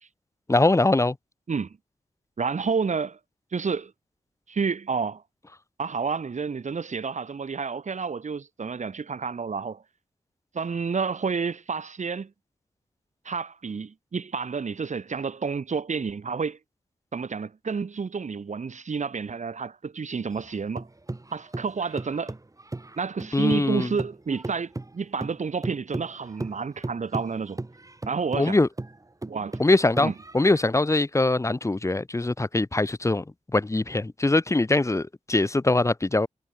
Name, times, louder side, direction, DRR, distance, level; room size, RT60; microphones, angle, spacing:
voice 1, 0.5-1.2 23.3-23.9 28.4-28.7 29.6-33.2 33.5-36.3, left 2 dB, 20° left, 1.2 m, -22 dB
voice 2, 2.4-3.2 3.5-3.9 4.5-5.2 5.8-9.8 10.5-12.3 13.2-16.6 17.1-20.9 21.3-22.3 23.0-27.6 28.1-28.6 29.3-29.6 30.0-30.1, right 5 dB, 65° right, 4.7 m, -30 dB
sound 1, 20.3-23.7 24.0-30.7, right 2 dB, 25° right, 3.0 m, -36 dB
cardioid pair, 70°, 13 cm